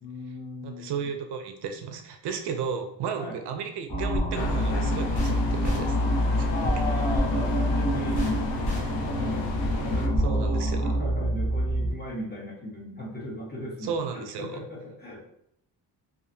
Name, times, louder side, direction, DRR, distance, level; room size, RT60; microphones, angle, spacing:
voice 1, 0.0-1.1 3.2-3.4 6.5-8.2 9.0-9.5 9.7-15.2, left 1 dB, 25° left, -2 dB, 0.8 m, -37 dB
voice 2, 0.6-6.0 6.3-6.4 10.2-10.8 13.8-14.6, right 6 dB, 70° right, 6 dB, 0.5 m, -33 dB
sound 1, 3.9-11.0, equal, 60° left, 0.9 m, -30 dB
sound 2, 3.9-11.9, equal, 10° right, 0.7 m, -28 dB
sound 3, 4.4-10.1, left 5 dB, 85° left, 0.6 m, -34 dB
2.8 x 2.5 x 2.6 m, 0.73 s
cardioid pair, 130°, 43 cm